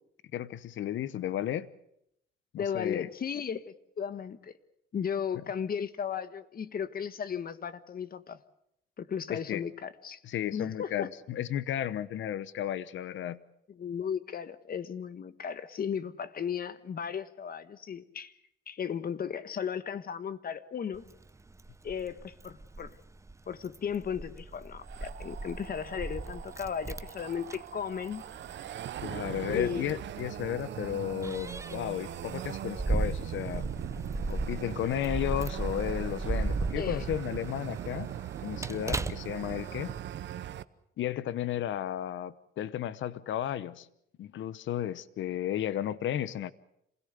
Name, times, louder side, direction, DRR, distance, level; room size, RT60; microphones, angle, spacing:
voice 1, 0.3-1.7 2.5-3.1 9.3-9.6 10.2-13.4 29.0-33.6 34.3-38.1 38.4-39.9 41.0-43.9 44.2-46.5, left 11 dB, 70° left, 1.0 m, -33 dB
voice 2, 2.6-4.5 4.9-8.4 9.0-10.2 10.5-11.1 13.7-18.3 18.7-21.0 21.8-22.9 23.5-28.2 29.5-29.9 36.7-37.1, left 7 dB, 50° left, 1.4 m, -35 dB
Keys jangling, 20.9-40.0, right 2 dB, 15° right, 0.8 m, -37 dB
sound 1, 24.8-40.6, right 11 dB, 65° right, 0.9 m, -40 dB
27.0 x 17.0 x 8.2 m
cardioid pair, 90°, 20 cm